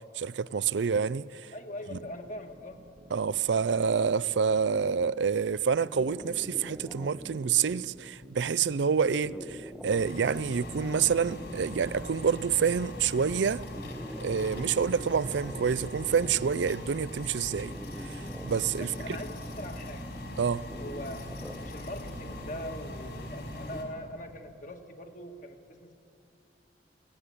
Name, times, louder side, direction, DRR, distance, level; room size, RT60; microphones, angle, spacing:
voice 1, 0.1-1.5 1.9-2.0 3.1-13.6 14.2-17.7 18.0-18.9 20.4-20.6, right 6 dB, 80° right, 0.4 m, -28 dB
voice 2, 1.5-2.9 18.8-20.1 20.8-25.9, left 1 dB, 45° left, 1.6 m, -42 dB
sound 1, 2.0-16.7, right 1 dB, 45° right, 1.2 m, -53 dB
sound 2, 5.8-23.8, equal, ahead, 0.7 m, -46 dB
sound 3, 9.9-23.8, equal, 65° left, 4.4 m, -41 dB
23.0 x 17.0 x 9.9 m
head